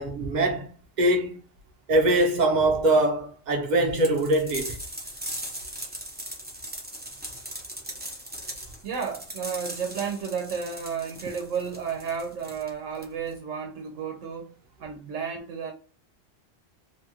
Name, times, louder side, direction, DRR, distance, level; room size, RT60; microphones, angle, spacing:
voice 1, 0.0-1.4 1.9-4.8, right 1 dB, 40° right, 0.8 m, -23 dB
sound 1, 4.0-13.4, right 1 dB, 10° right, 0.5 m, -39 dB
voice 2, 8.8-15.7, right 6 dB, 90° right, 1.0 m, -32 dB
3.3 x 2.3 x 2.8 m
omnidirectional pair, 1.3 m